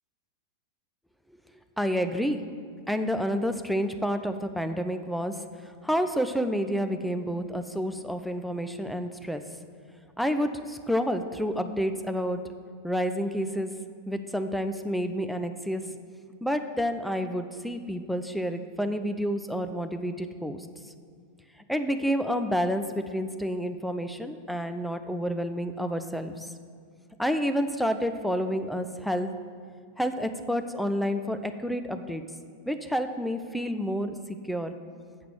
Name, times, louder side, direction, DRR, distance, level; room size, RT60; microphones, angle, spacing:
voice 1, 1.8-2.4 2.9-9.4 10.2-12.4 12.8-13.7 14.1-15.8 16.4-20.7 21.7-26.5 27.2-29.3 30.0-32.2 32.7-34.1 34.5-34.8, equal, ahead, 8 dB, 0.5 m, -29 dB
7.3 x 5.8 x 6.3 m, 2.2 s
figure-of-eight pair, 90°, 0 cm